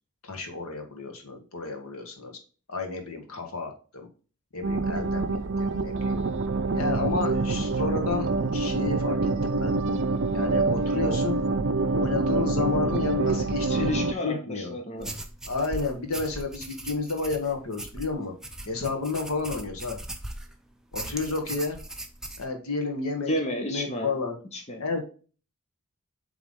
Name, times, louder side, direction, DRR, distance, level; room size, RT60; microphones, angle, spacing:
voice 1, 0.2-2.4 2.7-4.1 4.5-6.2 6.7-9.8 10.3-11.4 11.9-13.9 14.2-14.7 15.4-18.3 18.6-20.0 20.9-21.8 22.4-23.3 23.7-24.4 24.8-25.0, left 4 dB, 80° left, 4 dB, 1.6 m, -31 dB
sound 1, 4.6-14.1, right 3 dB, 55° right, 0.5 m, -26 dB
voice 2, 13.7-15.1 23.2-24.1 24.5-24.8, left 1 dB, 30° left, 3 dB, 0.9 m, -31 dB
sound 2, 15.0-20.5 20.9-22.5, right 1 dB, ahead, 0.6 m, -39 dB
7.5 x 3.6 x 3.7 m, 0.37 s
head